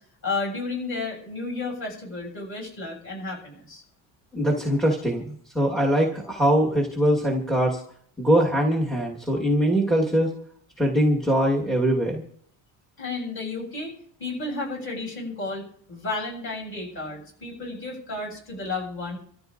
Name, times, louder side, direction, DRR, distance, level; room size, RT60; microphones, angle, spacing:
voice 1, 0.2-3.8 13.0-13.9 14.2-19.2, left 3 dB, 30° left, -1 dB, 6.4 m, -32 dB
voice 2, 4.3-7.8 8.2-10.3 10.8-12.2, right 1 dB, ahead, -2 dB, 1.4 m, -22 dB
26.5 x 14.0 x 2.5 m, 0.64 s
cardioid pair, 160°, 46 cm